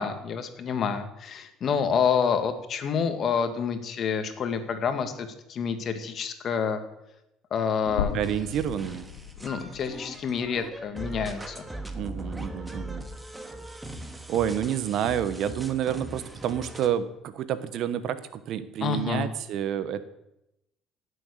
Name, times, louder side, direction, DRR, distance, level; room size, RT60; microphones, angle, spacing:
voice 1, 0.0-6.8 7.5-8.2 9.4-11.6 18.8-19.3, left 6 dB, 55° left, 8 dB, 2.2 m, -28 dB
sound 1, 7.8-16.9, right 1 dB, 10° right, 2.2 m, -40 dB
sound 2, 8.0-12.1 12.5-12.6 14.0-14.1, left 8 dB, 90° left, 0.9 m, -37 dB
voice 2, 8.1-9.1 11.9-13.1 14.3-20.1, right 10 dB, 65° right, 13 dB, 1.2 m, -29 dB
16.5 x 7.8 x 6.6 m, 0.86 s
hypercardioid pair, 65°, 0 cm